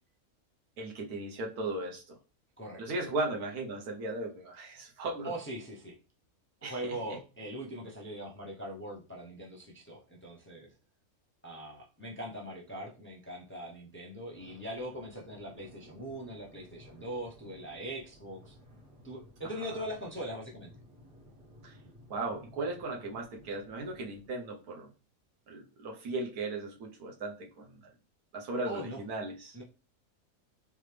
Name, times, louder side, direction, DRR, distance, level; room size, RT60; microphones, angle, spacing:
voice 1, 0.8-2.2 2.8-5.3 6.6-7.2 19.7-19.8 21.6-21.8 22.1-24.9 25.5-27.8 28.3-29.6, right 2 dB, 85° right, 1 dB, 1.4 m, -37 dB
voice 2, 2.6-3.1 5.2-6.0 6.7-10.7 11.4-18.5 19.0-20.7 28.6-29.0 29.5-29.6, right 1 dB, 10° left, -2 dB, 0.6 m, -41 dB
sound 1, 14.3-24.3, left 1 dB, 55° right, 1.5 m, -56 dB
3.5 x 3.5 x 3.3 m, 0.33 s
omnidirectional pair, 1.5 m